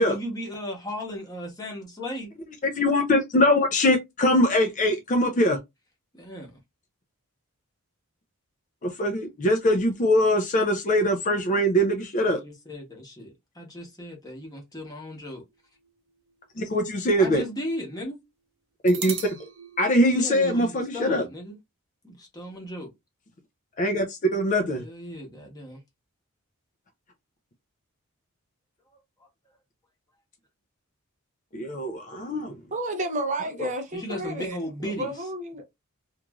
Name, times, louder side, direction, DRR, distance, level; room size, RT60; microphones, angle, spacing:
voice 1, 0.0-2.3 6.2-6.6 12.2-13.3 13.6-15.4 17.2-18.2 20.1-21.6 22.0-22.9 24.7-25.8 33.9-35.3, left 1 dB, 15° left, 0.9 m, -36 dB
voice 2, 2.8-5.6 8.8-12.4 16.6-17.4 18.8-19.3 19.8-21.2 23.8-24.8 31.5-32.5 33.6-33.7, left 1 dB, 35° left, 0.4 m, -22 dB
sound 1, 15.5-17.2 17.5-17.6 18.9-21.0, right 7 dB, 70° right, 0.9 m, -40 dB
voice 3, 32.7-35.6, right 1 dB, 35° right, 0.5 m, -31 dB
3.0 x 2.4 x 2.3 m
head